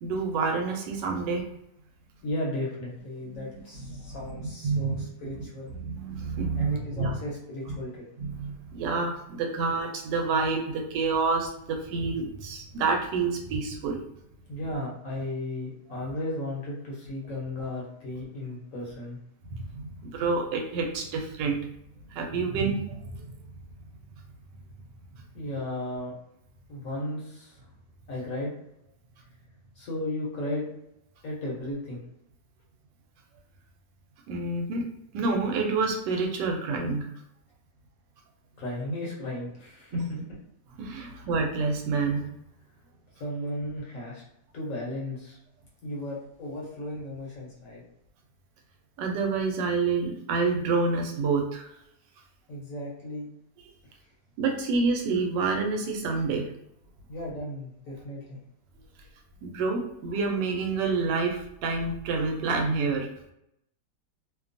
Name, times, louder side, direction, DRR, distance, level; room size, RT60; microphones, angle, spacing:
voice 1, 0.0-1.4 3.3-3.5 3.9-5.3 5.7-7.1 7.7-7.8 8.2-14.0 19.5-21.6 22.1-23.3 25.1-25.2 34.3-34.8 35.1-37.1 39.9-40.1 40.8-42.2 49.0-51.7 54.4-56.5 59.4-63.1, right 4 dB, 85° right, 2 dB, 1.2 m, -28 dB
voice 2, 2.2-5.7 6.6-8.0 14.5-19.2 25.3-26.2 26.7-27.7 28.1-28.5 29.8-30.7 31.2-32.0 38.6-40.2 41.0-41.1 43.2-44.2 44.5-45.4 45.8-47.8 52.5-53.3 57.1-58.4, left 1 dB, 60° left, -4 dB, 1.0 m, -35 dB
2.9 x 2.2 x 2.5 m, 0.79 s
omnidirectional pair, 1.8 m